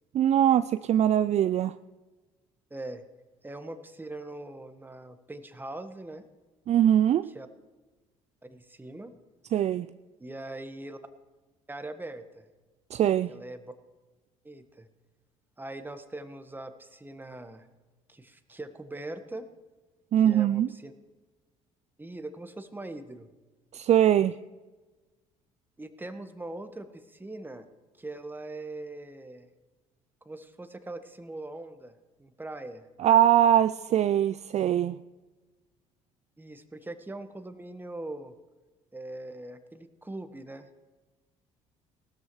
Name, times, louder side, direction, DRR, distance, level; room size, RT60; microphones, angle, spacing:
voice 1, 0.1-1.7 6.7-7.3 9.5-9.9 12.9-13.3 20.1-20.7 23.7-24.4 33.0-34.9, right 11 dB, 45° right, 13 dB, 0.4 m, -22 dB
voice 2, 2.7-3.0 3.4-6.2 7.3-7.5 8.5-9.1 10.2-11.0 11.7-12.4 13.3-13.6 14.4-14.9 15.6-17.7 18.1-19.4 20.2-20.9 22.0-23.3 25.8-27.7 28.0-29.5 30.2-32.9 36.4-38.3 38.9-40.7, right 2 dB, 10° right, 9 dB, 1.4 m, -41 dB
18.5 x 13.0 x 3.2 m, 1.2 s
hypercardioid pair, 55°, 16 cm